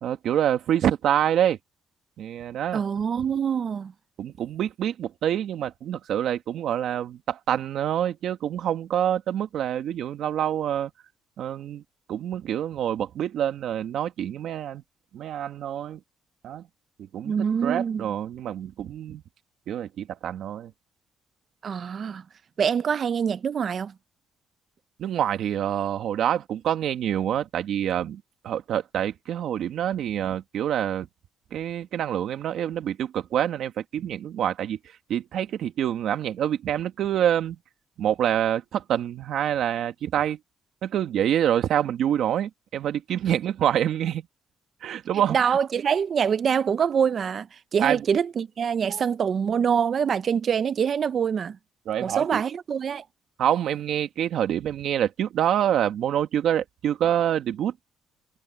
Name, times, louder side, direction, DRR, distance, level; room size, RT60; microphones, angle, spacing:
voice 1, 0.0-1.6 2.2-2.8 4.2-10.9 11.4-11.8 12.1-14.8 15.1-16.0 16.4-16.7 17.0-19.2 19.7-20.7 25.0-31.1 31.5-37.6 38.0-40.4 40.8-44.3 44.8-45.4 47.8-48.0 48.9-49.1 51.9-52.4 53.4-57.7, right 10 dB, 75° right, 2.0 m, -26 dB
voice 2, 2.7-3.9 17.2-18.0 21.6-22.2 22.6-23.9 45.3-47.5 47.7-51.6 52.0-53.0, right 7 dB, 50° right, 0.8 m, -25 dB
cardioid pair, 90°, 0 cm